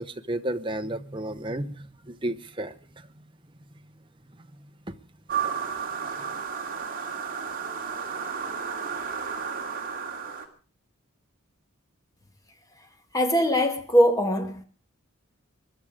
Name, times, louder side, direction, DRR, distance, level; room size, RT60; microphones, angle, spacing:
voice 1, 0.0-3.2 4.3-4.9, right 1 dB, 25° right, 1.0 m, -33 dB
sound 1, 5.3-10.5, right 6 dB, 40° right, 2.5 m, -32 dB
voice 2, 13.1-14.6, equal, 15° left, 1.9 m, -21 dB
23.0 x 11.5 x 5.1 m
head